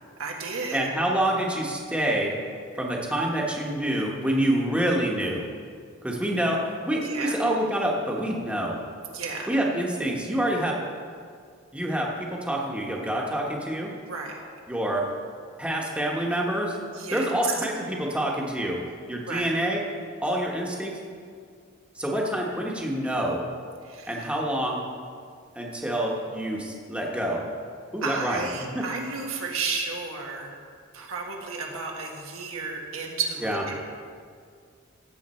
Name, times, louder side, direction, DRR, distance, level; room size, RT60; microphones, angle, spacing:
voice 1, 0.2-0.9 7.0-7.4 9.1-9.5 14.1-14.4 16.9-17.3 19.2-19.5 23.8-24.3 28.0-30.6 30.9-33.8, right 4 dB, 85° right, 0 dB, 1.7 m, -33 dB
voice 2, 0.7-2.3 2.7-5.5 6.0-8.8 9.5-10.8 11.7-13.9 14.7-15.0 15.6-16.8 17.1-18.8 19.1-19.8 20.2-21.0 21.9-23.4 24.1-24.8 25.5-27.5 27.9-28.8 33.4-33.6, right 1 dB, 5° right, -2 dB, 1.3 m, -27 dB
16.0 x 7.5 x 4.4 m, 2.2 s
head